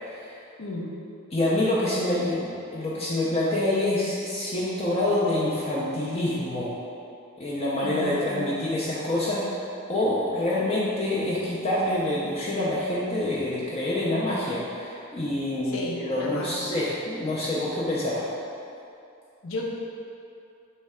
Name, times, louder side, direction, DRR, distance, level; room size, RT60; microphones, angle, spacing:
voice 1, 0.0-0.4 1.3-6.7 7.4-9.4 9.9-18.3, left 1 dB, 30° left, -7 dB, 0.5 m, -26 dB
voice 2, 0.6-0.9 7.8-8.5 15.7-16.5 19.4-19.6, left 1 dB, 70° left, -2 dB, 0.6 m, -33 dB
3.2 x 3.2 x 4.8 m, 2.6 s
head